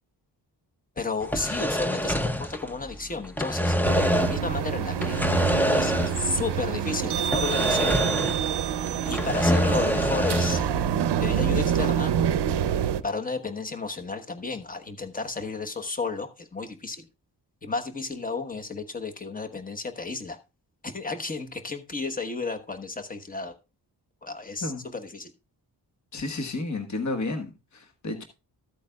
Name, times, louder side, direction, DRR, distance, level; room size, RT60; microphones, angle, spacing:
voice 1, 1.0-5.2 5.7-8.1 9.0-10.6 11.2-12.1 13.0-17.1 17.6-20.4 20.8-23.5 24.2-25.3, left 4 dB, 20° left, 1.2 m, -32 dB
sound 1, 1.2-3.0 3.2-4.5 5.0-6.4 6.6-6.7 7.3-8.6 8.9-10.7, equal, 5° left, 0.6 m, -25 dB
sound 2, 3.8-13.0, right 8 dB, 80° right, 0.7 m, -27 dB
voice 2, 26.1-28.2, left 2 dB, 45° left, 1.5 m, -31 dB
14.5 x 8.4 x 2.3 m
wide cardioid pair, 165°, 40 cm